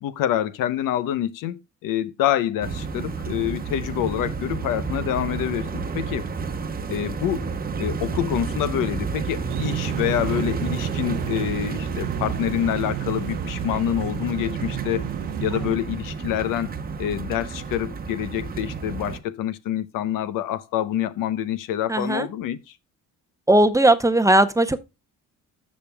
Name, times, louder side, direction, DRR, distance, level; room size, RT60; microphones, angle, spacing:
voice 1, 0.0-6.2 6.9-7.5 7.8-15.1 15.4-16.7 17.0-22.6, left 11 dB, 85° left, 0.8 m, -26 dB
sound 1, 2.6-19.2, right 5 dB, 30° right, 0.9 m, -31 dB
sound 2, 9.5-15.8, right 17 dB, 90° right, 0.5 m, -32 dB
voice 2, 21.9-22.3 23.5-24.8, right 1 dB, 10° right, 0.6 m, -18 dB
15.0 x 5.2 x 2.2 m
cardioid pair, 115°, 32 cm